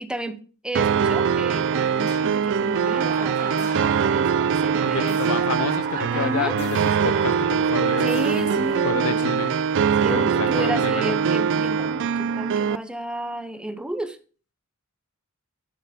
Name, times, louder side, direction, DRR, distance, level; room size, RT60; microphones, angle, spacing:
voice 1, 0.0-5.2 6.1-6.5 8.0-9.4 9.9-14.2, right 1 dB, 5° right, 0.6 m, -32 dB
sound 1, 0.8-12.8, right 6 dB, 60° right, 0.4 m, -22 dB
sound 2, 2.1-2.8 3.6-4.3 5.1-5.8 6.6-7.3 8.1-8.8, left 4 dB, 50° left, 2.5 m, -48 dB
Laughter, 2.5-10.2, right 6 dB, 40° right, 0.7 m, -36 dB
voice 2, 4.8-9.5 10.1-11.1, left 6 dB, 70° left, 0.5 m, -29 dB
11.0 x 4.5 x 5.1 m
head